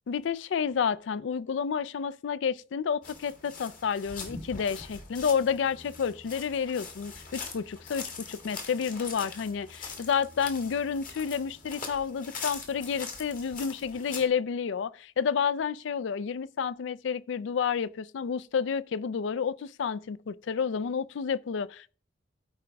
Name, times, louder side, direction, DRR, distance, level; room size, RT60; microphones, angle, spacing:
voice 1, 0.1-21.9, left 6 dB, 65° left, 0.3 m, -30 dB
sound 1, 3.0-14.3, left 4 dB, 45° left, 1.5 m, -42 dB
13.5 x 4.7 x 3.4 m
head